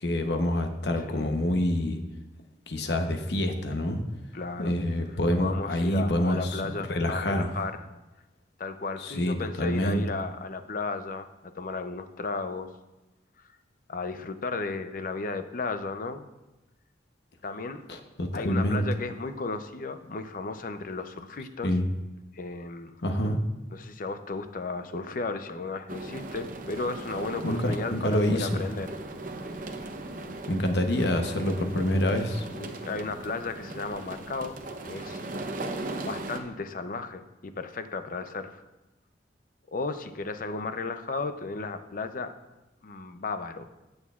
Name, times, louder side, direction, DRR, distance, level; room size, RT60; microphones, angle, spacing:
voice 1, 0.0-2.0 2.7-4.0 4.6-6.6 6.9-7.5 9.0-10.0 17.9-18.9 21.6-21.8 23.0-23.4 27.4-27.6 27.9-28.6 30.5-32.5, left 1 dB, 65° left, 5 dB, 0.9 m, -27 dB
voice 2, 4.3-4.7 5.4-7.8 8.6-12.7 13.9-16.3 17.4-17.8 18.3-21.7 22.3-22.9 23.2-23.4 23.7-29.0 32.5-34.6 34.8-35.2 36.0-38.6 39.7-42.4 42.8-43.7, left 3 dB, 50° left, 9 dB, 0.6 m, -34 dB
sound 1, 25.9-36.4, right 2 dB, 45° right, 0.8 m, -38 dB
16.0 x 6.4 x 2.4 m, 1.0 s
head